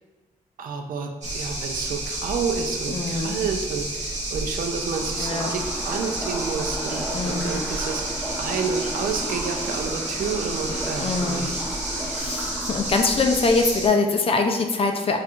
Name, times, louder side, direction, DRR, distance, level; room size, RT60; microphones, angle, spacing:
voice 1, 0.6-11.5, right 5 dB, 85° right, 4 dB, 0.4 m, -30 dB
sound 1, 1.2-13.9, right 1 dB, 60° right, 1.0 m, -30 dB
voice 2, 2.9-3.4 5.2-5.5 7.1-7.5 11.0-11.5 12.1-15.2, left 3 dB, 40° left, 4 dB, 0.4 m, -23 dB
sound 2, 4.6-13.3, equal, 5° right, 0.7 m, -34 dB
4.3 x 2.4 x 2.5 m, 1.2 s
wide cardioid pair, 125°, 14 cm